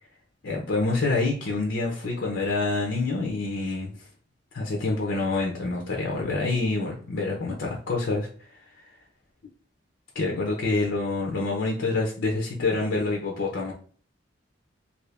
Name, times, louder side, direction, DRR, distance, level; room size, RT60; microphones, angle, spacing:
voice 1, 0.4-3.9 4.5-8.3 8.7-8.8 10.1-13.7, left 3 dB, 75° left, -1 dB, 0.7 m, -27 dB
2.7 x 2.7 x 3.3 m, 0.44 s
head